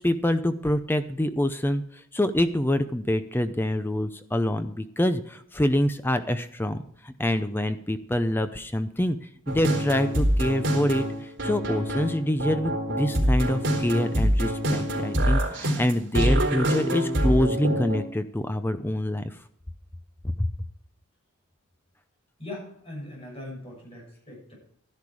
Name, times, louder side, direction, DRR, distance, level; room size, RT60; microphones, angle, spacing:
voice 1, 0.0-19.4 20.4-20.5, left 1 dB, 10° left, 10 dB, 0.5 m, -26 dB
sound 1, 9.5-18.0, equal, 55° right, 3.8 m, -25 dB
voice 2, 22.4-24.5, left 1 dB, 25° left, -2 dB, 7.4 m, -40 dB
13.5 x 11.0 x 4.8 m, 0.63 s
head